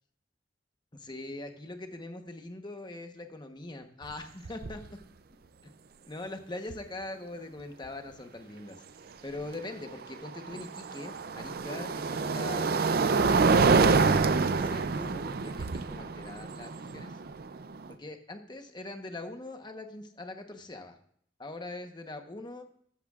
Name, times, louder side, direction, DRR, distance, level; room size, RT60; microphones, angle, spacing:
voice 1, 0.9-5.0 5.6-5.7 6.1-8.8 9.2-17.1 17.9-21.0 21.4-22.6, left 2 dB, 25° left, 5 dB, 1.1 m, -42 dB
sound 1, 4.0-4.1 4.5-4.9 6.7-6.8 9.8-17.9, right 4 dB, 55° right, 0.5 m, -27 dB
14.0 x 12.5 x 2.4 m, 0.65 s
head